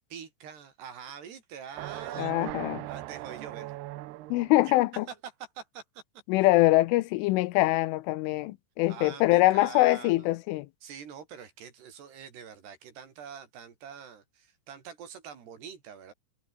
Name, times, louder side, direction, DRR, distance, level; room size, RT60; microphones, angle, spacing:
voice 1, 0.0-2.3 2.9-3.7 4.4-4.5 4.9-6.0 8.9-10.3 10.8-16.1, right 7 dB, 55° right, 5.2 m, -45 dB
sound 1, 1.7-4.6, right 17 dB, 75° right, 2.4 m, -39 dB
voice 2, 2.2-2.9 4.3-5.1 6.3-10.7, left 18 dB, 80° left, 3.1 m, -24 dB
omnidirectional pair, 5.8 m